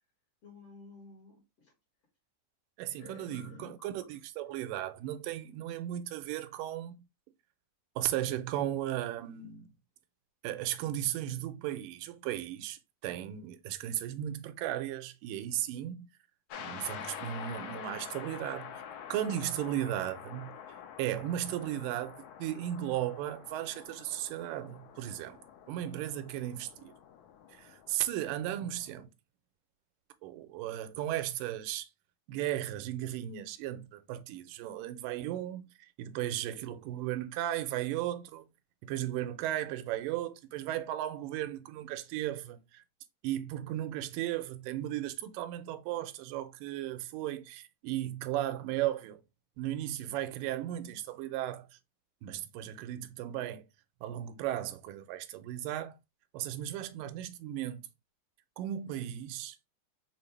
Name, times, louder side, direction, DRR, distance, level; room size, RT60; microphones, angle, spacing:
voice 1, 0.4-1.7 3.0-3.9, left 4 dB, 55° left, 2.3 m, -52 dB
voice 2, 2.8-7.0 8.0-9.7 10.4-16.1 16.6-18.8 19.1-20.5 21.0-25.4 25.7-26.9 27.6-29.1 30.2-31.9 32.3-35.7 36.0-38.5 38.8-42.8 43.2-49.2 49.6-51.7 52.2-53.6 54.0-56.0 56.3-57.8 58.6-59.6, right 12 dB, 80° right, 2.1 m, -35 dB
sound 1, 16.5-29.0, left 8 dB, 85° left, 2.3 m, -47 dB
5.6 x 2.4 x 3.2 m
omnidirectional pair, 3.9 m